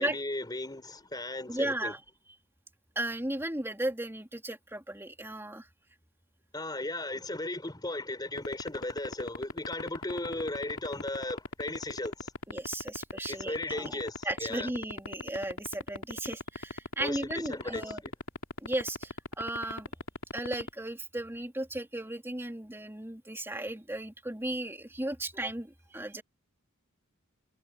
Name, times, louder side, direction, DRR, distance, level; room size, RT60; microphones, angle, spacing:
voice 1, 0.0-1.9 6.5-12.3 13.3-14.7 17.0-18.1, left 2 dB, 20° left, 4.1 m, -36 dB
voice 2, 1.5-2.0 2.9-5.7 12.5-18.0 18.6-19.9 20.3-26.2, right 1 dB, 10° right, 3.2 m, -35 dB
sound 1, 8.4-20.7, left 2 dB, 70° left, 2.8 m, -35 dB
head